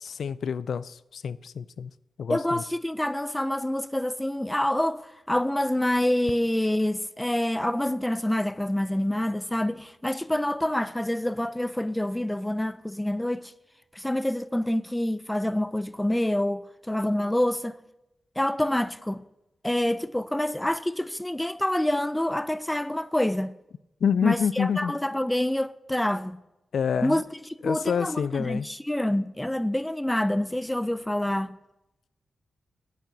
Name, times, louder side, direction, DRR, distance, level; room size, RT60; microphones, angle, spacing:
voice 1, 0.0-1.9 2.2-2.6 24.0-24.9 26.7-27.2 27.6-28.7, left 7 dB, 80° left, 0.3 m, -27 dB
voice 2, 2.3-13.5 14.0-17.8 18.4-19.2 19.6-23.6 24.2-26.4 27.0-31.6, left 1 dB, 10° left, 0.4 m, -27 dB
10.5 x 8.3 x 5.9 m
cardioid pair, 80°, 0 cm